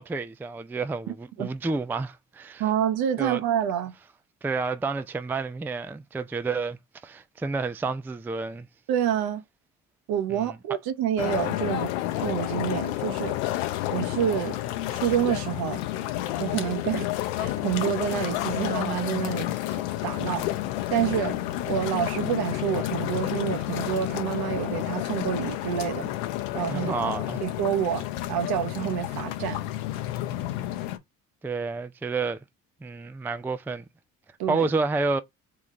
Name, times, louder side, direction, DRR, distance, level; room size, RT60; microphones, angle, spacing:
voice 1, 0.0-2.6 3.2-3.4 4.4-8.7 10.3-10.6 26.7-27.4 31.4-32.4 32.8-33.8 34.5-35.2, right 4 dB, 5° right, 0.4 m, -30 dB
voice 2, 2.6-3.9 8.9-9.4 10.1-13.4 13.9-14.6 14.9-15.8 16.4-17.1 17.4-19.8 20.0-20.5 20.9-21.4 21.7-26.1 26.5-26.9 27.4-29.6 34.4-34.7, right 9 dB, 60° right, 0.9 m, -28 dB
sound 1, 11.2-31.0, left 14 dB, 75° left, 0.7 m, -30 dB
3.9 x 3.1 x 3.6 m
hypercardioid pair, 50°, 41 cm